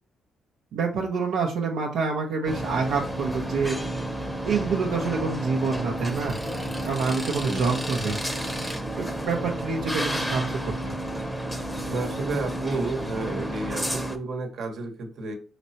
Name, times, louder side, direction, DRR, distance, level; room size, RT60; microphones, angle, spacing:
voice 1, 0.7-3.8 4.4-6.4 6.8-8.2 9.0-10.9, right 4 dB, 80° right, -2 dB, 0.8 m, -27 dB
sound 1, 2.5-14.2, right 1 dB, 5° left, 0.7 m, -31 dB
voice 2, 11.9-15.4, right 3 dB, 65° right, 3 dB, 1.2 m, -31 dB
5.0 x 3.3 x 2.8 m, 0.36 s
cardioid pair, 90°, 0 cm